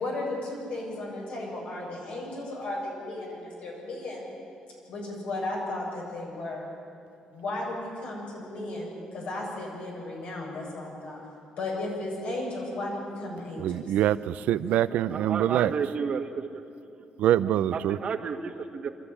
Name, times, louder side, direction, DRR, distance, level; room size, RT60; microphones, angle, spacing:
voice 1, 0.0-4.3 4.9-6.7 7.3-11.2 11.6-13.8, left 2 dB, 75° left, -3 dB, 7.7 m, -35 dB
voice 2, 13.6-15.7 17.2-18.0, right 12 dB, 85° right, 15 dB, 0.6 m, -24 dB
voice 3, 14.9-16.6 17.0-17.1 17.7-18.9, right 6 dB, 50° right, 6 dB, 1.7 m, -32 dB
24.5 x 13.5 x 10.0 m, 2.7 s
cardioid pair, 95°, 2 cm